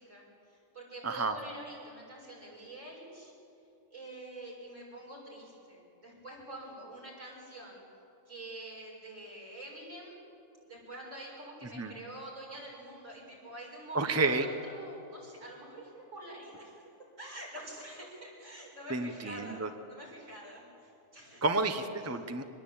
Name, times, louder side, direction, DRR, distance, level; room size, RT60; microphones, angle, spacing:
voice 1, 0.0-3.3 3.9-7.8 8.3-10.2 10.6-16.8 17.2-21.5, right 1 dB, 70° right, -3 dB, 7.3 m, -46 dB
voice 2, 1.0-1.3 11.7-11.9 13.9-14.5 18.9-19.7 21.4-22.4, right 3 dB, 15° right, 7 dB, 0.9 m, -30 dB
25.0 x 21.0 x 8.8 m, 2.8 s
omnidirectional pair, 1.4 m